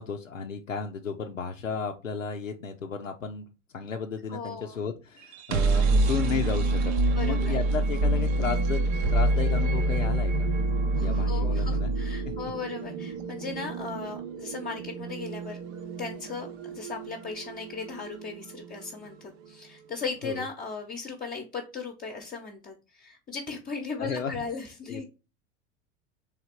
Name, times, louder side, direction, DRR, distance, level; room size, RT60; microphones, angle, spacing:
voice 1, 0.0-10.5 11.0-11.9 12.3-12.4 20.2-20.5 24.0-24.5 24.9-25.0, left 5 dB, 90° left, 3 dB, 0.5 m, -34 dB
voice 2, 4.3-4.8 7.1-7.6 11.0-15.6 16.0-19.2 19.5-25.0, left 5 dB, 25° left, 0 dB, 0.8 m, -37 dB
sound 1, 5.2-19.1, right 2 dB, 45° right, 0.7 m, -27 dB
3.5 x 3.3 x 4.4 m, 0.31 s
figure-of-eight pair, 80°, 38 cm